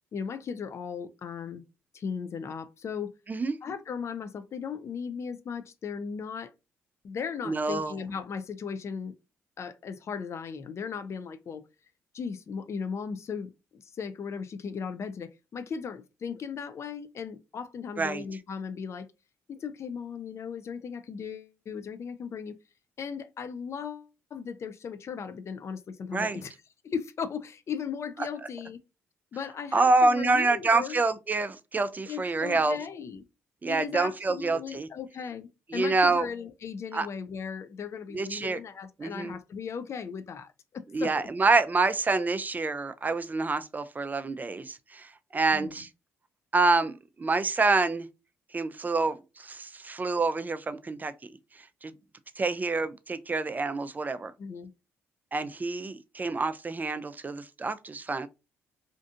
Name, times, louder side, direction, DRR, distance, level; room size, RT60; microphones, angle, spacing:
voice 1, 0.1-1.6 1.9-3.1 3.6-6.5 7.0-9.1 9.6-11.6 12.1-19.1 19.5-22.6 23.0-26.5 26.8-28.8 29.3-31.0 32.1-33.3 33.7-41.3 45.5-45.9 54.4-54.7, left 6 dB, 50° left, 0.4 m, -37 dB
voice 2, 7.5-7.9 18.0-18.2 26.1-26.4 29.7-32.8 33.6-34.9 35.7-36.3 36.9-37.1 38.1-38.6 39.0-39.4 40.9-45.9 46.5-48.1 48.5-51.3 51.8-51.9 52.4-54.3 55.3-58.3, right 3 dB, 30° right, 0.3 m, -27 dB
2.5 x 2.4 x 2.5 m
supercardioid pair, 55°, 6 cm